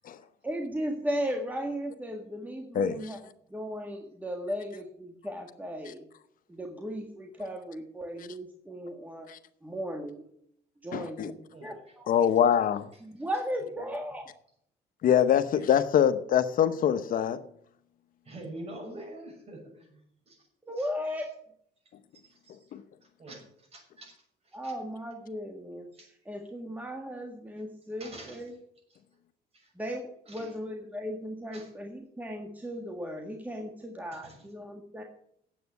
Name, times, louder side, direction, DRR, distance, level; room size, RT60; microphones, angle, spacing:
voice 1, 0.4-3.2 3.5-6.1 6.5-9.3 9.6-10.3 10.8-12.1 13.0-14.2 20.6-21.4 24.5-25.9 26.2-28.5 29.7-35.0, equal, 10° right, 1.6 m, -36 dB
voice 2, 10.9-11.3 12.1-12.9 15.0-17.4 22.7-22.8, left 9 dB, 55° left, 0.8 m, -24 dB
voice 3, 18.2-20.5 20.8-20.9 22.2-22.6 23.2-24.2 24.4-24.7 25.9-26.1 28.0-28.4 29.5-29.7 30.3-30.5 31.5-31.7 34.0-34.4, right 1 dB, 35° right, 6.4 m, -46 dB
9.2 x 8.0 x 9.3 m
cardioid pair, 110°, 17 cm